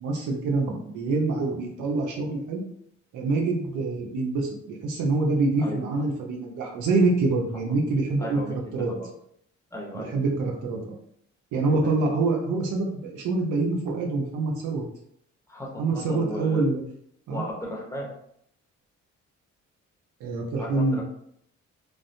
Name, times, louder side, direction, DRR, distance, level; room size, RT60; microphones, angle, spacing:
voice 1, 0.0-2.6 3.1-8.9 9.9-11.0 11.5-14.8 15.8-16.8 17.3-17.4 20.2-21.0, right 3 dB, 80° right, 0 dB, 0.7 m, -26 dB
voice 2, 8.2-9.1 9.7-10.2 11.8-12.0 15.5-16.6 17.3-18.1 20.6-21.0, left 1 dB, 10° left, -3 dB, 0.9 m, -35 dB
3.3 x 2.1 x 2.6 m, 0.70 s
cardioid pair, 90°, 30 cm